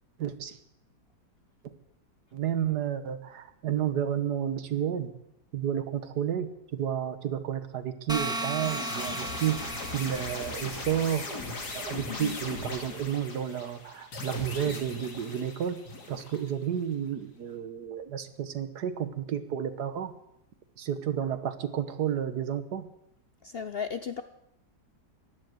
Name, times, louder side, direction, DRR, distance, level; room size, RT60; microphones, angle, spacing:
voice 1, 0.2-0.6 2.3-5.1 5.5-9.6 9.9-11.4 11.7-15.8 16.1-20.1 20.8-22.9, right 9 dB, 75° right, 11 dB, 1.7 m, -31 dB
sound 1, 8.1-11.0, right 1 dB, 5° right, 1.3 m, -35 dB
sound 2, 8.6-16.7, left 3 dB, 75° left, 3.0 m, -39 dB
voice 2, 12.1-12.4 23.4-24.2, left 6 dB, 55° left, 10 dB, 0.7 m, -35 dB
16.0 x 11.5 x 7.9 m, 0.82 s
omnidirectional pair, 1.7 m